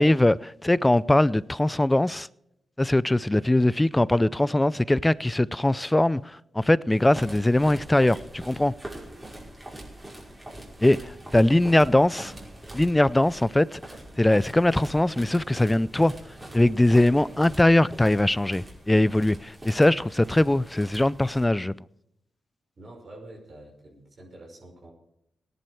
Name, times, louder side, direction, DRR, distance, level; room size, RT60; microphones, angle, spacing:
voice 1, 0.0-2.3 2.8-8.7 10.8-12.3 12.7-13.8 14.2-16.1 16.5-21.7, left 1 dB, 15° left, 0.5 m, -21 dB
sound 1, 6.9-21.5, right 1 dB, 20° right, 5.4 m, -43 dB
voice 2, 22.8-24.9, right 1 dB, 55° right, 5.8 m, -46 dB
17.5 x 10.5 x 4.9 m
supercardioid pair, 40°, 0 cm